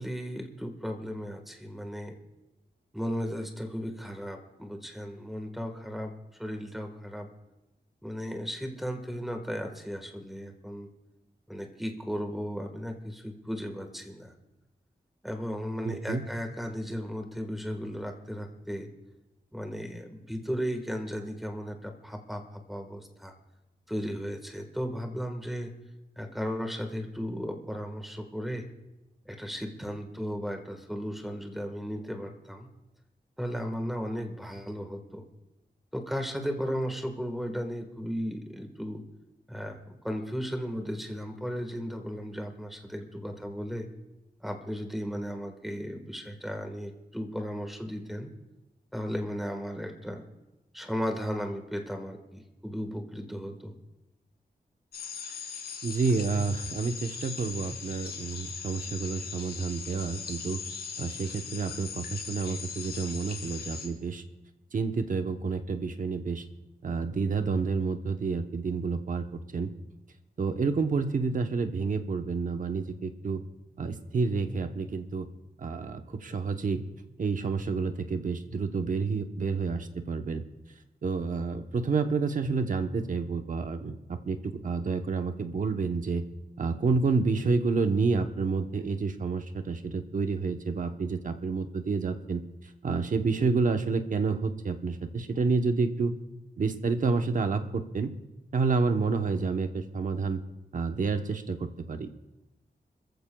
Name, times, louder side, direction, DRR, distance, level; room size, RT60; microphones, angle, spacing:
voice 1, 0.0-2.1 2.9-6.1 6.4-7.3 8.0-10.9 11.5-14.3 15.2-18.9 19.5-23.3 23.9-25.7 26.2-28.7 29.2-32.7 33.4-35.2 35.9-39.0 39.5-39.8 40.0-43.9 44.4-48.3 48.9-50.2 50.7-53.7, equal, ahead, 4 dB, 1.5 m, -35 dB
voice 2, 15.8-16.2 55.8-60.6 61.0-64.2 64.7-66.4 66.8-69.3 69.5-69.7 70.4-73.4 73.8-75.3 75.6-76.8 77.2-80.4 81.0-86.2 86.6-92.4 92.8-96.2 96.6-98.1 98.5-100.4 100.7-102.1, right 4 dB, 55° right, 6 dB, 0.9 m, -29 dB
sound 1, 54.9-63.9, left 6 dB, 85° left, 2.5 m, -39 dB
27.0 x 14.5 x 2.3 m, 0.99 s
wide cardioid pair, 140°, 16 cm